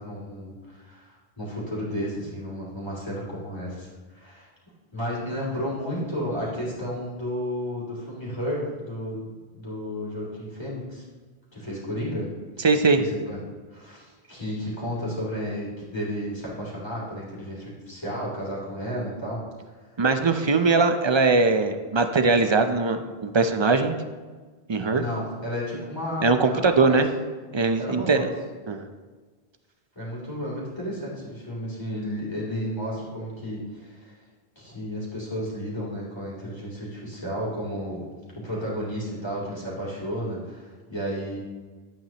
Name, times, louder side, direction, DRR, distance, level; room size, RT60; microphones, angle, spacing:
voice 1, 0.0-4.5 4.9-9.3 9.5-11.0 11.5-12.3 12.6-12.7 13.0-13.4 13.7-19.4 24.9-27.0 27.8-28.3 29.9-34.2 34.6-38.0 38.3-41.4, equal, 25° left, -7 dB, 2.9 m, -32 dB
voice 2, 12.6-13.0 20.0-24.0 24.7-25.0 26.2-27.1 27.5-28.3 28.7-28.8, right 3 dB, 35° right, 8 dB, 0.5 m, -21 dB
11.0 x 8.8 x 2.9 m, 1.4 s
omnidirectional pair, 1.1 m